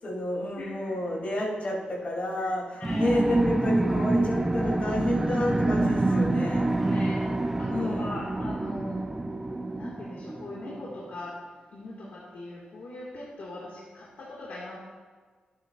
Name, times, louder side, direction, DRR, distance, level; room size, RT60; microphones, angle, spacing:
voice 1, 0.0-6.7 7.7-8.2, left 1 dB, 50° left, -4 dB, 2.8 m, -30 dB
voice 2, 0.6-1.0 2.4-3.1 5.7-7.3 7.6-9.0 9.7-11.3 11.7-14.8, left 2 dB, 70° left, -6 dB, 1.9 m, -41 dB
sound 1, 2.8-11.0, right 2 dB, 15° right, 0.4 m, -26 dB
14.0 x 8.4 x 2.4 m, 1.5 s
wide cardioid pair, 135°, 3 cm